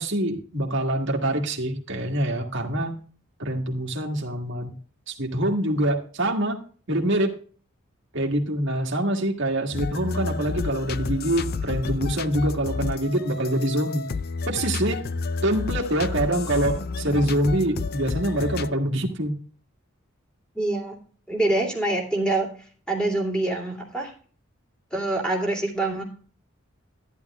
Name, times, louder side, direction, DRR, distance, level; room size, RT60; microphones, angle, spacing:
voice 1, 0.0-3.0 3.4-4.7 5.1-6.6 6.9-7.3 8.1-14.0 14.5-15.0 15.4-19.4, right 1 dB, 60° right, 1 dB, 1.6 m, -25 dB
sound 1, 9.7-18.7, left 4 dB, 45° left, 0.4 m, -30 dB
voice 2, 20.5-21.0 21.3-22.5 22.9-24.1 24.9-26.0, right 2 dB, 5° left, 0 dB, 2.7 m, -25 dB
12.0 x 10.5 x 2.3 m, 0.42 s
head